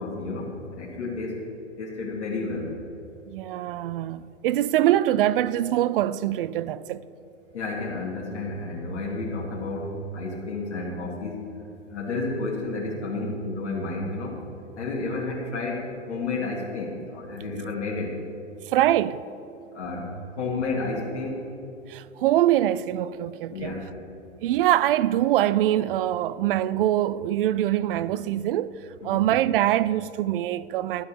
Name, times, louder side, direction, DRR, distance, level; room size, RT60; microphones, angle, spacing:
voice 1, 0.0-1.4 1.8-2.7 7.5-11.4 11.9-14.4 14.8-18.2 19.7-21.5 23.5-23.9 29.1-29.3, left 3 dB, 70° left, 2.2 m, -31 dB
voice 2, 3.3-7.0 18.7-19.2 21.9-23.7 24.4-28.7 29.0-31.0, right 13 dB, 50° right, 0.5 m, -23 dB
12.0 x 5.2 x 8.5 m
hypercardioid pair, 110°, 35 cm